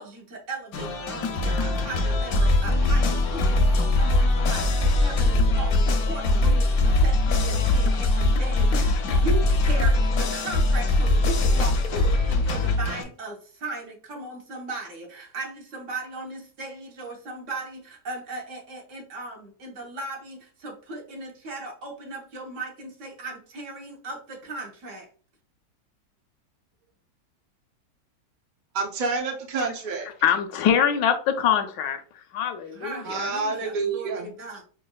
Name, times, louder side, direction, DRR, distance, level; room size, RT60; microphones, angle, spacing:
voice 1, 0.0-25.1 32.7-34.6, right 2 dB, 45° right, 1.4 m, -37 dB
sound 1, 0.7-13.0, left 2 dB, 65° left, 1.0 m, -21 dB
voice 2, 28.7-30.1 33.0-34.3, right 4 dB, 80° right, 0.4 m, -28 dB
voice 3, 30.2-32.0 32.3-33.3, left 8 dB, 85° left, 1.3 m, -23 dB
5.7 x 2.6 x 2.3 m
omnidirectional pair, 1.9 m